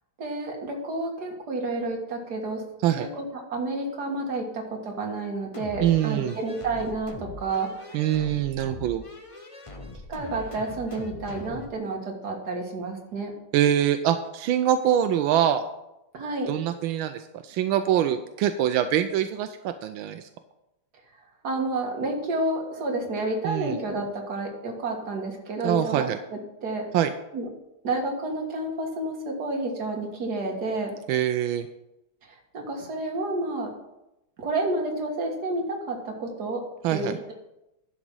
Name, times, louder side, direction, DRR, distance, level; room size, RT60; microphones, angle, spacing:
voice 1, 0.2-2.6 3.0-7.7 10.1-13.3 16.1-16.5 21.4-26.1 26.6-26.9 27.3-27.4 27.8-30.9 32.5-33.7 34.4-36.6 36.9-37.3, right 2 dB, 55° right, 1 dB, 2.1 m, -30 dB
sound 1, 5.5-11.7, left 2 dB, 35° left, 0.5 m, -41 dB
voice 2, 5.8-6.4 7.9-9.0 13.5-15.6 16.5-20.3 23.4-23.8 25.6-26.2 26.9-27.1 31.1-31.7 36.8-37.2, right 10 dB, 85° right, 9 dB, 1.4 m, -24 dB
11.0 x 5.1 x 6.2 m, 0.90 s
omnidirectional pair, 2.2 m